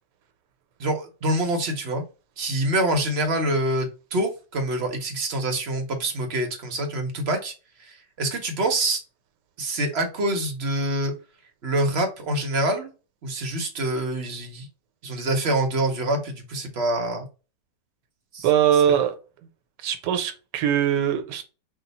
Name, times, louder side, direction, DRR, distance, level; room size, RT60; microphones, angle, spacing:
voice 1, 0.8-2.0 2.4-7.5 7.8-9.0 9.6-11.1 11.6-12.9 13.2-14.7 15.0-17.2 18.3-18.5, right 1 dB, 50° right, 0.9 m, -26 dB
voice 2, 18.4-19.2 19.8-21.4, right 9 dB, 80° right, 1.3 m, -21 dB
3.6 x 2.4 x 4.0 m
omnidirectional pair, 1.9 m